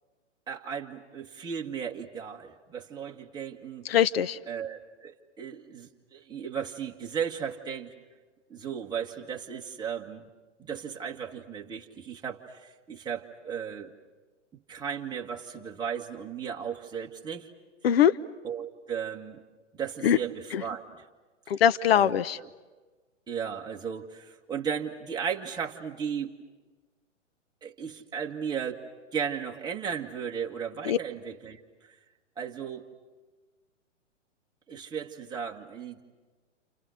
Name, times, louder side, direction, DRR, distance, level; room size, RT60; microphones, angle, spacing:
voice 1, 0.5-3.9 4.5-7.9 8.5-10.2 10.6-13.9 14.7-17.5 18.4-19.4 19.7-21.0 21.9-22.5 23.3-26.3 27.6-28.8 29.1-31.6 32.4-32.9 34.7-36.0, right 7 dB, 10° right, -1 dB, 1.9 m, -35 dB
voice 2, 3.8-4.4 17.8-18.2 20.0-20.2 20.5-20.6 21.5-22.4 30.8-31.0, left 9 dB, 55° left, 14 dB, 0.9 m, -22 dB
29.5 x 29.5 x 6.6 m, 1.3 s
figure-of-eight pair, 120°, 37 cm